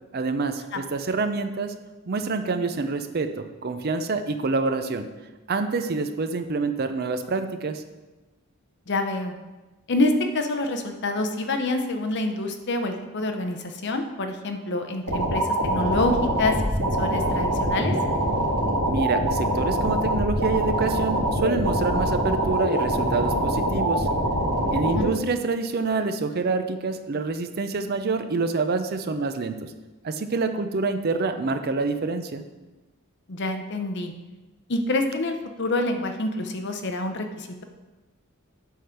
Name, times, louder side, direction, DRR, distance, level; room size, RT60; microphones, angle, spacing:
voice 1, 0.1-1.7 2.1-5.1 5.5-7.8 18.9-24.1 24.7-29.7 30.0-32.4, right 3 dB, 45° right, 8 dB, 0.5 m, -27 dB
voice 2, 8.9-9.3 9.9-17.9 24.9-25.1 33.3-34.1 34.7-37.6, left 2 dB, 50° left, 6 dB, 0.7 m, -27 dB
sound 1, 15.1-25.1, right 1 dB, 85° right, 1.7 m, -24 dB
8.4 x 3.8 x 5.7 m, 1.1 s
head